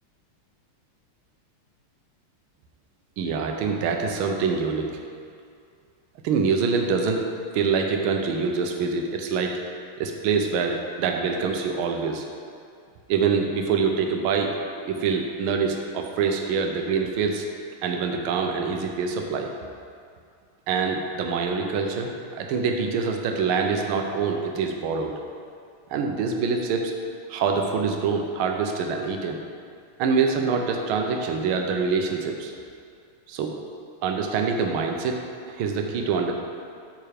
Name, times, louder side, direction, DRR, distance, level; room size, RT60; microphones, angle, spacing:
voice 1, 3.2-4.9 6.2-7.3 7.5-9.6 10.0-12.3 13.1-14.5 14.9-17.5 17.8-19.5 20.7-25.1 25.9-26.9 27.3-29.4 30.0-32.5 33.3-33.5 34.0-35.2 35.5-36.3, right 5 dB, 80° right, 3 dB, 1.6 m, -25 dB
8.7 x 4.5 x 5.0 m, 2.3 s
omnidirectional pair, 2.4 m